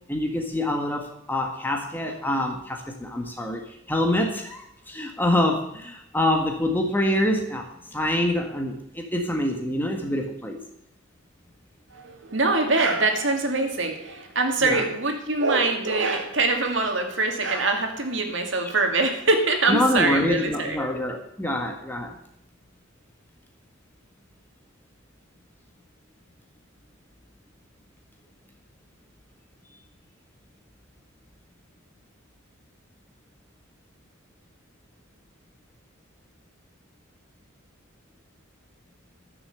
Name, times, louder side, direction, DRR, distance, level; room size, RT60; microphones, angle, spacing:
voice 1, 0.1-10.6 14.6-14.8 19.7-22.2, left 1 dB, 10° left, 3 dB, 1.6 m, -26 dB
voice 2, 11.9-20.8, right 3 dB, 60° right, 4 dB, 2.2 m, -24 dB
14.0 x 7.0 x 8.0 m, 0.78 s
head